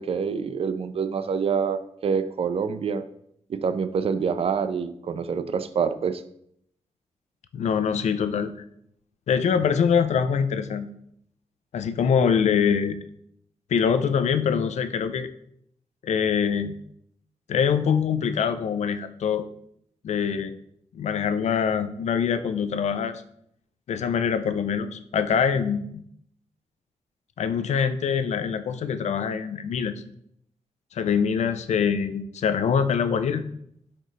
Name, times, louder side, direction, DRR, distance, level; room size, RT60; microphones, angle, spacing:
voice 1, 0.0-3.0 3.5-6.2, right 6 dB, 50° right, 11 dB, 0.4 m, -26 dB
voice 2, 7.5-8.5 9.3-10.9 11.7-13.0 13.7-15.3 16.0-16.7 17.5-19.5 20.0-20.5 20.9-23.2 23.9-25.8 27.4-29.9 30.9-33.4, left 7 dB, 70° left, 11 dB, 0.4 m, -24 dB
4.4 x 3.8 x 3.1 m, 0.71 s
cardioid pair, 75°, 12 cm